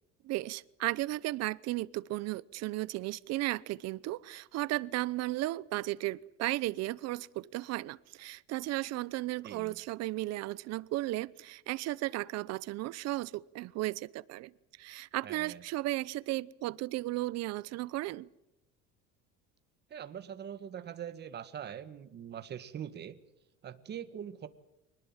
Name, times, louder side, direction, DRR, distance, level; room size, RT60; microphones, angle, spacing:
voice 1, 0.2-14.5 14.8-18.3, right 17 dB, 55° right, 0.8 m, -35 dB
voice 2, 9.4-9.8 15.2-15.6 19.9-23.2 23.6-24.5, right 9 dB, 35° right, 1.7 m, -43 dB
25.0 x 19.5 x 7.3 m
cardioid pair, 160°, 30 cm